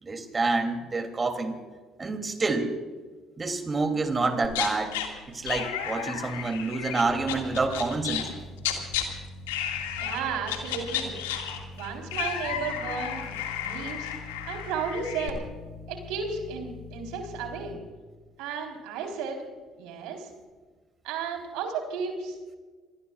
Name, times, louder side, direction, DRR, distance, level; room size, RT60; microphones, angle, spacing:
voice 1, 0.0-1.5 2.0-2.7 3.4-5.0 5.3-8.3, right 3 dB, 30° right, 6 dB, 2.9 m, -28 dB
sound 1, 4.4-5.1 5.5-8.3 8.6-9.0 9.5-10.2 10.5-15.3, left 10 dB, 85° left, 2.1 m, -33 dB
sound 2, 7.1-17.7, left 3 dB, 55° left, 5.4 m, -44 dB
voice 2, 9.5-11.1 11.7-13.3 13.6-14.1 14.5-15.4 15.9-17.8 18.4-19.4 19.8-20.3 21.0-22.4, right 5 dB, 75° right, 3 dB, 4.0 m, -34 dB
27.0 x 20.0 x 2.4 m, 1.4 s
hypercardioid pair, 55°, 0 cm